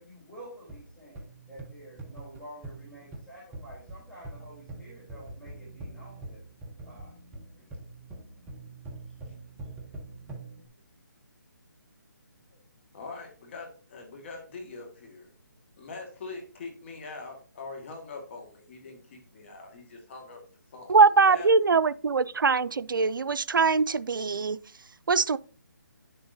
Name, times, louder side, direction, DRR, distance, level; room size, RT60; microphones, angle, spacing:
voice 1, 0.0-6.4 6.8-7.2 7.5-8.2, right 1 dB, 5° left, 3.3 m, -49 dB
sound 1, 0.7-10.7, right 2 dB, 10° right, 0.9 m, -44 dB
voice 2, 12.9-15.3 15.8-20.4 20.7-21.5, left 3 dB, 35° left, 1.8 m, -43 dB
voice 3, 20.9-24.6 25.1-25.4, right 4 dB, 85° right, 0.4 m, -22 dB
9.6 x 6.7 x 2.7 m
hypercardioid pair, 160°, 11 cm